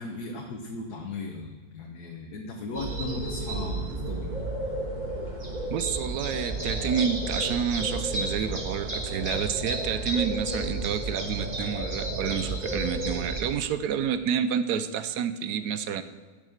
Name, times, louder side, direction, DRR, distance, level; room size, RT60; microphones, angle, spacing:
voice 1, 0.0-4.4, left 3 dB, 80° left, 0 dB, 1.6 m, -36 dB
sound 1, 2.7-13.4, right 1 dB, 30° right, 1.7 m, -32 dB
voice 2, 5.7-16.0, right 8 dB, 80° right, 12 dB, 1.2 m, -29 dB
12.0 x 7.4 x 6.5 m, 1.4 s
omnidirectional pair, 1.7 m